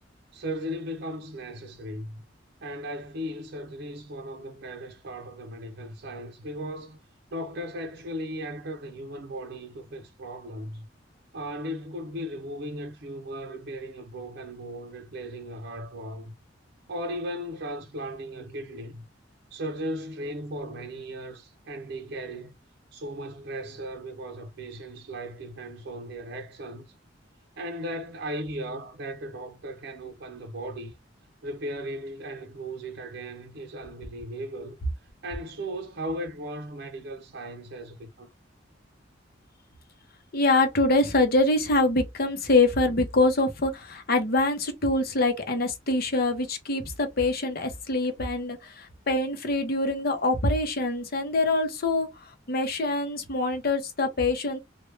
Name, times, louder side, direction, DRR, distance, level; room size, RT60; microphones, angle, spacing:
voice 1, 0.3-2.2 2.6-7.0 7.3-10.9 11.3-16.3 16.9-19.0 19.5-22.5 22.9-26.8 27.6-30.9 31.4-34.8 35.2-38.3, equal, 55° right, 0.6 m, -37 dB
voice 2, 40.3-54.6, left 2 dB, 50° left, 0.8 m, -25 dB
3.3 x 2.3 x 3.2 m
head